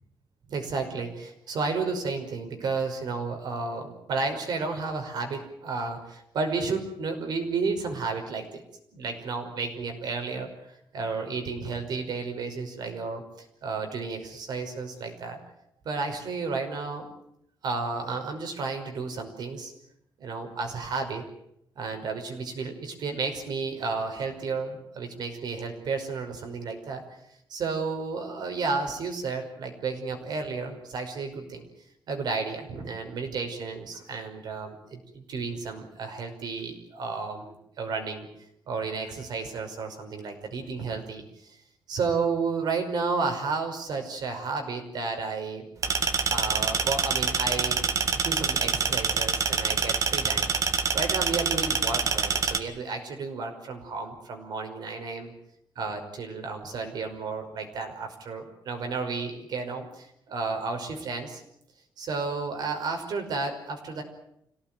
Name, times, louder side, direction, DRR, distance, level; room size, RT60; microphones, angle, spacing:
voice 1, 0.5-8.6 8.9-15.4 15.8-17.1 17.6-19.7 20.2-21.3 21.8-27.0 27.5-31.7 32.1-38.3 38.7-41.6 41.9-45.7 46.3-50.5 50.9-55.3 55.8-61.4 62.0-64.0, right 4 dB, 60° right, 5 dB, 5.6 m, -32 dB
sound 1, 45.8-52.6, right 5 dB, 45° right, 2.0 m, -26 dB
26.5 x 17.5 x 9.3 m, 0.76 s
wide cardioid pair, 165°, 8 cm